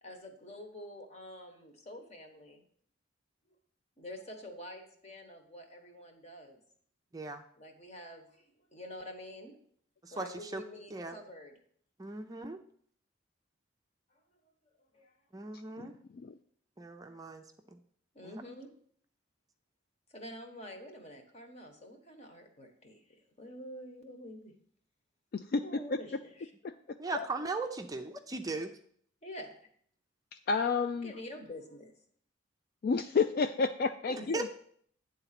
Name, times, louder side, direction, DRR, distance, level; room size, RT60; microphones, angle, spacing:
voice 1, 0.0-2.6 4.0-6.6 7.6-9.6 10.1-11.5 14.1-14.5 14.9-15.1 18.1-18.7 20.1-24.5 25.6-26.5 29.2-29.5 31.0-31.9 34.1-34.5, left 1 dB, 35° left, 4 dB, 1.2 m, -47 dB
voice 2, 10.0-10.6 10.9-11.2 12.0-12.6 15.3-15.9 16.8-17.4 17.7-17.8 18.2-18.4 27.0-28.7 34.1-34.5, right 3 dB, 20° right, 5 dB, 0.5 m, -38 dB
voice 3, 15.8-16.3 25.3-25.6 27.1-27.3 30.5-31.1 32.8-34.5, left 4 dB, 50° left, 8 dB, 0.3 m, -30 dB
9.2 x 3.9 x 5.8 m, 0.62 s
head